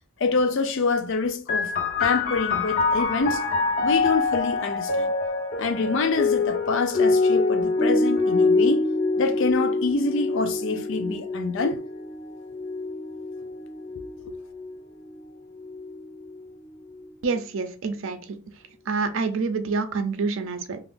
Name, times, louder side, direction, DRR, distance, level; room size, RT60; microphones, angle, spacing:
voice 1, 0.2-1.7 2.0-3.4 3.8-5.1 5.6-8.9 9.2-11.8, left 4 dB, 65° left, 0.5 m, -26 dB
sound 1, 1.5-14.7 15.6-16.4, left 3 dB, 45° left, 0.9 m, -25 dB
voice 2, 17.2-18.2 18.9-20.8, right 4 dB, 70° right, 0.5 m, -27 dB
3.6 x 2.5 x 2.5 m
head